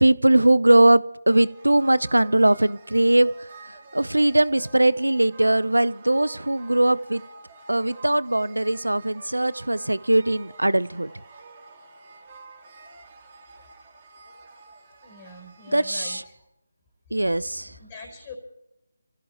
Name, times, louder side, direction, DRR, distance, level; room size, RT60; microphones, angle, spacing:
voice 1, 0.0-7.2 7.7-11.1 15.7-16.2 17.1-17.8, right 1 dB, 85° right, 20 dB, 0.6 m, -20 dB
sound 1, 1.3-16.2, right 3 dB, 30° right, 3.5 m, -48 dB
voice 2, 15.0-16.4 17.8-18.3, left 3 dB, 25° left, 0 dB, 4.5 m, -43 dB
29.5 x 15.5 x 3.0 m, 0.83 s
figure-of-eight pair, 155°, 0 cm